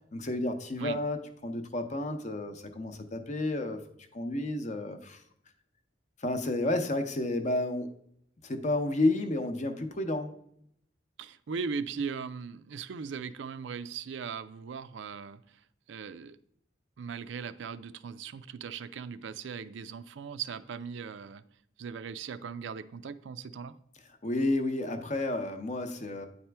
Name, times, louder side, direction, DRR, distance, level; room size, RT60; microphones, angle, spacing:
voice 1, 0.1-3.8 4.1-5.2 6.2-7.9 8.4-10.3 24.2-26.3, left 2 dB, 40° left, 0.7 m, -31 dB
voice 2, 11.2-15.6 15.9-16.4 17.0-21.4 21.8-23.8, right 6 dB, 70° right, 0.4 m, -39 dB
9.3 x 4.3 x 3.4 m
head